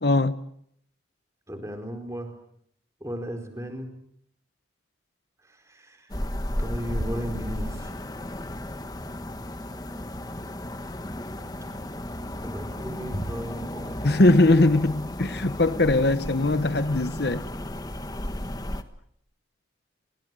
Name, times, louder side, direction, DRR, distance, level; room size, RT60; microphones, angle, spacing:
voice 1, 0.0-0.4 14.0-17.4, left 2 dB, 60° left, 1.1 m, -21 dB
voice 2, 1.5-2.3 3.0-3.9 5.5-6.2 6.6-7.9 12.4-14.1, equal, 15° right, 4.3 m, -36 dB
sound 1, 6.1-18.8, left 1 dB, 20° left, 1.4 m, -34 dB
29.5 x 25.0 x 7.7 m
head